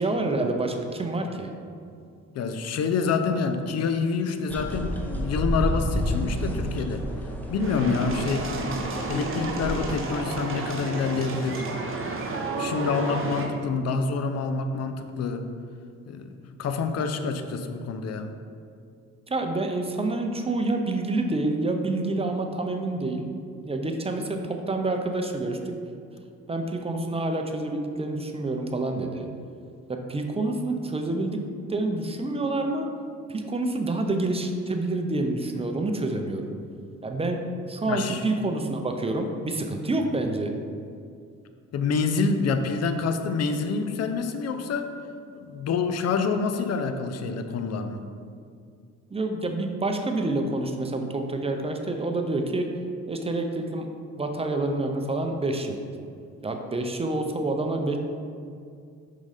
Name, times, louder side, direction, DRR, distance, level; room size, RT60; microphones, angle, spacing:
voice 1, 0.0-1.5 19.3-23.3 23.6-25.7 26.5-29.3 29.9-31.4 31.7-32.9 33.3-36.5 37.0-37.4 37.7-40.5 49.1-52.7 53.1-53.9 54.2-55.8 56.4-58.0, right 2 dB, 20° right, 4 dB, 0.6 m, -27 dB
voice 2, 2.3-7.0 7.5-8.5 9.1-11.6 12.4-15.5 16.1-18.3 37.8-38.2 41.7-44.9 45.3-48.0, left 4 dB, 60° left, 7 dB, 0.6 m, -27 dB
sound 1, 4.5-10.2, equal, 5° left, 0.8 m, -31 dB
sound 2, 7.6-13.5, right 2 dB, 45° right, 0.9 m, -31 dB
5.3 x 3.8 x 4.9 m, 2.3 s
cardioid pair, 90°, 30 cm